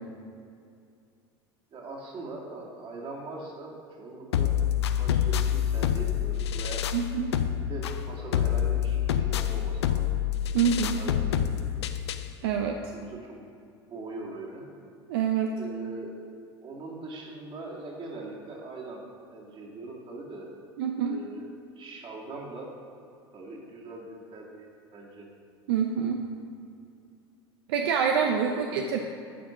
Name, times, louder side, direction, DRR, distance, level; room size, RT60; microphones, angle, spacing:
voice 1, 1.7-4.5 4.9-6.9 7.6-10.1 10.5-10.6 11.0-11.6 12.9-13.5 13.9-14.6 15.6-16.1 16.6-19.0 19.3-20.5 21.0-21.5 21.8-22.7 23.3-25.3 28.5-28.6, right 2 dB, 40° right, -2 dB, 2.3 m, -41 dB
sound 1, 4.3-12.3, left 10 dB, 85° left, 0.5 m, -27 dB
voice 2, 6.9-7.3 10.5-11.0 12.4-12.8 15.1-15.6 20.8-21.2 25.7-26.2 27.7-29.0, right 7 dB, 75° right, 3 dB, 0.6 m, -26 dB
11.0 x 4.4 x 5.8 m, 2.4 s
hypercardioid pair, 85°, 14 cm